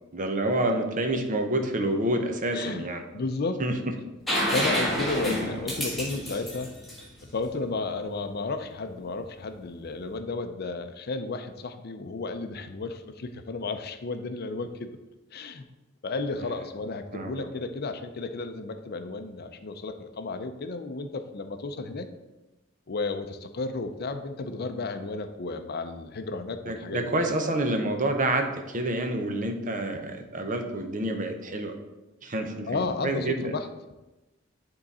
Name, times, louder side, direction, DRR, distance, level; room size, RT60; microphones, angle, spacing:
voice 1, 0.1-3.0 3.6-3.7 5.2-5.4 17.1-17.5 26.7-31.7 32.2-33.5, right 1 dB, 40° right, 5 dB, 0.8 m, -28 dB
voice 2, 2.5-3.6 4.5-6.8 7.2-15.0 15.3-15.6 16.0-22.1 22.9-27.1 32.7-33.7, left 3 dB, 50° left, 9 dB, 0.5 m, -33 dB
sound 1, 4.3-8.0 9.8-9.9, equal, ahead, 1.7 m, -29 dB
9.7 x 3.8 x 4.2 m, 1.0 s
head